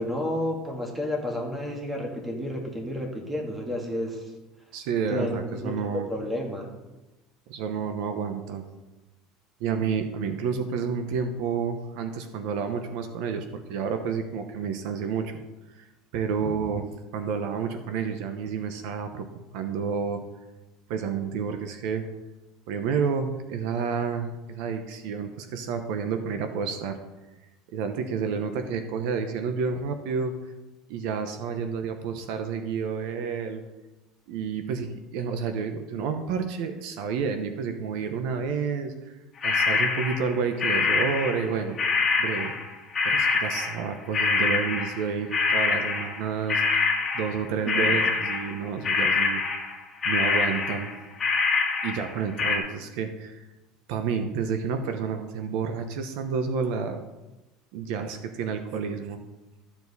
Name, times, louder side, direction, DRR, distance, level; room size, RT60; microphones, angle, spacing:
voice 1, 0.0-4.3 5.1-5.8 6.1-6.7 47.7-48.0, left 1 dB, 10° right, 1 dB, 1.6 m, -31 dB
voice 2, 4.7-6.1 7.5-8.7 9.6-15.3 15.8-15.9 16.1-19.3 19.5-20.2 20.9-22.1 22.7-27.0 27.7-30.5 30.9-33.6 34.3-39.1 39.4-41.8 42.2-42.5 43.0-46.9 47.1-49.4 50.0-50.9 51.8-53.5 53.9-57.0 57.7-59.2, right 6 dB, 60° right, 8 dB, 0.9 m, -30 dB
sound 1, 39.4-46.2 46.5-48.6 48.8-49.8 50.0-52.6, left 4 dB, 15° left, 1.8 m, -25 dB
13.5 x 7.2 x 4.1 m, 1.1 s
cardioid pair, 170°, 0 cm